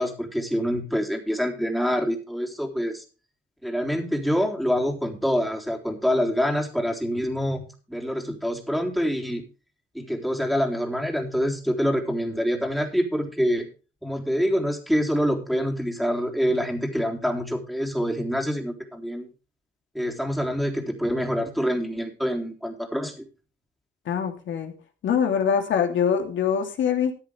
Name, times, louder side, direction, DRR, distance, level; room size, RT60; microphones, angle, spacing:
voice 1, 0.0-3.0 3.6-9.4 9.9-13.7 14.0-19.3 19.9-23.3, equal, ahead, 3 dB, 3.7 m, -26 dB
voice 2, 24.1-24.7 25.0-27.1, left 7 dB, 70° left, 5 dB, 3.0 m, -23 dB
14.5 x 9.9 x 3.4 m, 0.35 s
cardioid pair, 90°, 20 cm